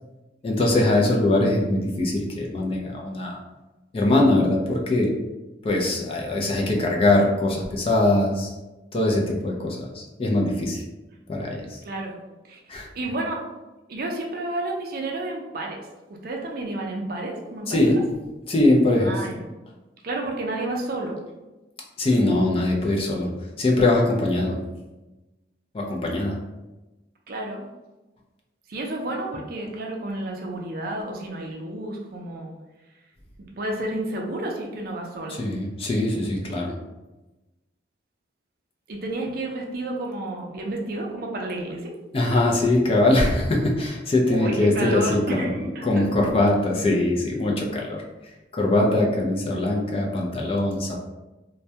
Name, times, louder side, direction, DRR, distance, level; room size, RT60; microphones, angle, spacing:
voice 1, 0.4-3.4 3.9-5.1 5.6-8.5 8.9-10.8 11.3-11.8 12.7-12.9 17.7-18.0 18.5-19.2 22.0-23.3 23.6-24.5 25.7-26.4 35.3-36.7 42.1-45.5 45.8-48.0 48.5-51.0, left 2 dB, 30° left, -1 dB, 0.3 m, -22 dB
voice 2, 11.8-12.1 12.5-12.6 12.9-13.4 13.9-17.9 19.0-19.5 20.0-21.2 27.3-27.6 28.7-32.5 33.4-35.4 38.9-42.0 44.3-46.1, right 2 dB, 55° right, 0 dB, 0.4 m, -31 dB
2.2 x 2.1 x 2.7 m, 1.1 s
head